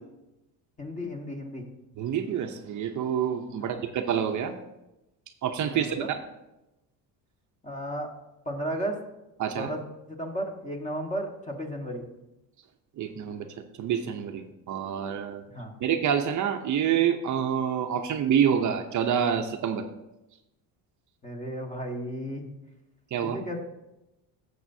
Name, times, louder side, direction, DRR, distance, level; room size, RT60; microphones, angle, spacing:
voice 1, 0.8-1.6 3.6-3.8 5.7-6.1 7.6-8.1 8.4-9.0 9.6-9.8 10.1-12.0 15.5-15.7 21.2-22.4 23.2-23.6, equal, 20° left, 2 dB, 1.5 m, -34 dB
voice 2, 2.0-4.5 5.4-6.2 9.4-9.7 13.0-13.5 13.8-15.4 15.8-19.9 23.1-23.4, right 8 dB, 50° right, 5 dB, 0.7 m, -27 dB
14.5 x 6.8 x 2.7 m, 0.94 s
cardioid pair, 135°, 40 cm